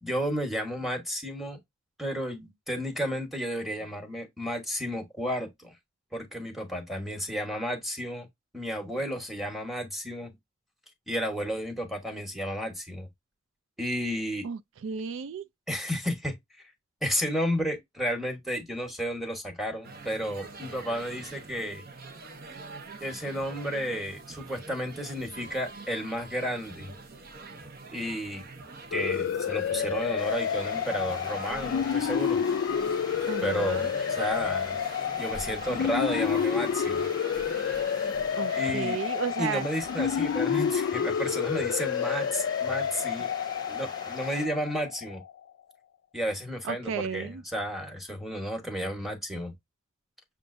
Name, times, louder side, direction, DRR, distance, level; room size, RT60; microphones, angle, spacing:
voice 1, 0.0-1.6 2.0-5.8 6.1-8.3 8.5-10.3 11.1-13.1 13.8-14.5 15.7-16.4 17.0-21.8 23.0-26.9 27.9-28.4 28.9-32.4 33.4-33.9 34.2-34.8 35.2-37.0 38.6-39.0 39.4-43.3 43.7-45.2 46.1-49.5, equal, ahead, 1.2 m, -32 dB
voice 2, 14.4-15.4 33.3-34.0 38.4-39.6 46.6-47.4, right 6 dB, 75° right, 0.4 m, -33 dB
sound 1, 19.8-38.7, right 3 dB, 50° right, 0.8 m, -45 dB
sound 2, 28.9-45.3, left 7 dB, 75° left, 0.3 m, -29 dB
sound 3, 30.2-44.5, left 3 dB, 20° left, 0.8 m, -43 dB
7.0 x 2.4 x 2.5 m
head